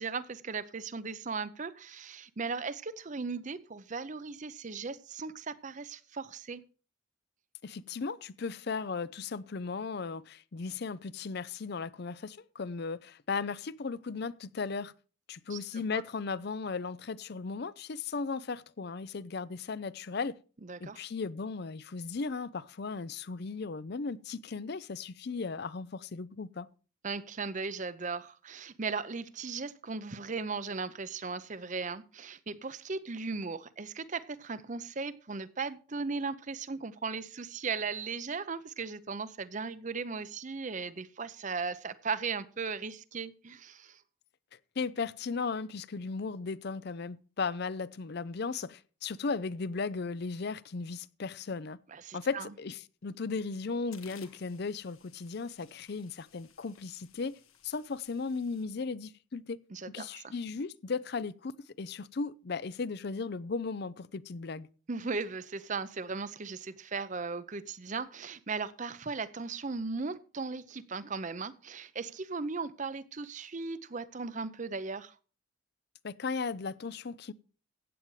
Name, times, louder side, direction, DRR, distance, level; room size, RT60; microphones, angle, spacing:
voice 1, 0.0-6.6 15.5-15.6 15.9-16.0 20.7-21.0 27.0-44.0 51.9-52.5 59.7-60.3 64.9-75.2, right 4 dB, 35° right, 0.6 m, -37 dB
voice 2, 7.6-14.9 15.3-20.4 20.8-26.7 44.8-51.8 52.1-57.4 57.6-59.6 59.9-61.5 61.8-64.7 76.0-77.3, left 4 dB, 50° left, 0.5 m, -36 dB
sound 1, 53.0-53.2 53.5-58.6, left 9 dB, 80° left, 1.7 m, -59 dB
15.5 x 8.8 x 3.2 m
head